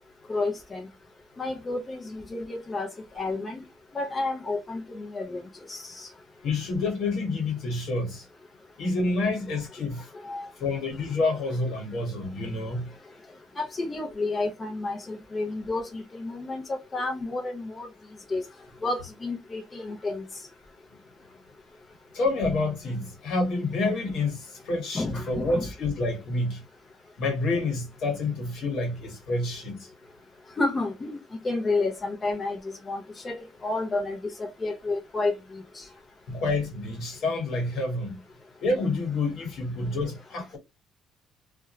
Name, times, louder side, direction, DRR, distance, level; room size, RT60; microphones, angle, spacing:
voice 1, 0.3-0.9 1.4-3.6 3.9-5.4 5.7-6.1 10.2-10.5 13.6-17.9 18.3-18.4 18.8-20.2 24.9-25.7 30.6-31.2 31.4-35.9, left 3 dB, 25° left, 0.6 m, -31 dB
voice 2, 6.4-8.2 8.8-10.1 10.6-12.9 22.1-26.6 27.2-29.9 36.3-38.2 38.6-40.6, left 2 dB, 65° left, 1.3 m, -28 dB
2.4 x 2.2 x 2.9 m
cardioid pair, 115°, 0 cm